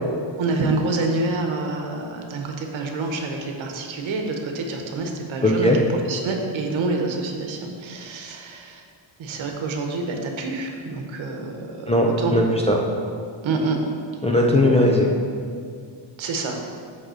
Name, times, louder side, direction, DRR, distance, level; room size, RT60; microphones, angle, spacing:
voice 1, 0.4-5.7 6.1-8.8 9.2-12.4 13.4-13.8 16.2-16.6, right 3 dB, 75° right, 2 dB, 1.1 m, -27 dB
voice 2, 5.4-5.8 11.9-12.8 14.2-15.1, left 1 dB, 15° left, -1 dB, 0.3 m, -18 dB
8.1 x 3.6 x 6.4 m, 2.2 s
wide cardioid pair, 160°, 48 cm